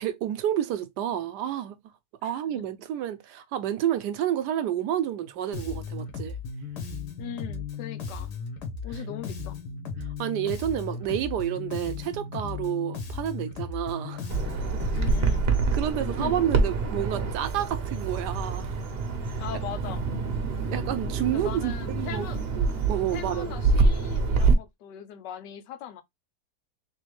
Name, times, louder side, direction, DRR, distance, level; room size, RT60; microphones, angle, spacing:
voice 1, 0.0-1.8 2.2-6.4 10.2-14.9 15.7-18.7 19.3-19.4 20.7-22.3 22.6-23.5, right 11 dB, 80° right, 1.2 m, -30 dB
voice 2, 2.2-2.6 7.2-8.3 8.8-9.6 14.9-15.5 16.2-16.4 19.4-20.0 21.3-22.4 23.1-26.0, left 10 dB, 85° left, 1.3 m, -39 dB
Bass guitar, 5.5-15.4, left 5 dB, 70° left, 1.5 m, -36 dB
Bird vocalization bird call bird song, 14.3-24.5, right 4 dB, 50° right, 0.8 m, -26 dB
3.6 x 3.4 x 3.1 m
omnidirectional pair, 1.8 m